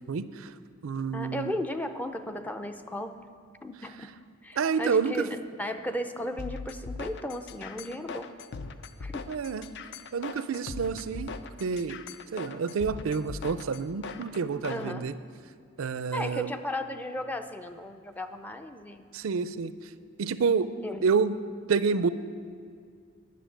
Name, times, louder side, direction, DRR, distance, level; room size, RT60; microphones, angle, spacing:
voice 1, 0.1-0.5 0.8-1.5 4.6-5.3 9.3-9.6 10.1-11.3 11.6-12.0 12.3-15.1 15.8-16.5 19.1-19.7 20.2-20.7 21.0-21.4 21.7-22.1, right 5 dB, 90° right, 14 dB, 0.5 m, -28 dB
voice 2, 1.1-3.2 3.6-4.1 4.4-8.3 9.0-9.3 14.7-15.2 16.1-19.0 20.8-21.1, left 1 dB, 10° left, 8 dB, 0.5 m, -35 dB
sound 1, 6.4-14.9, left 4 dB, 60° left, 0.5 m, -40 dB
10.5 x 6.6 x 9.0 m, 2.2 s
head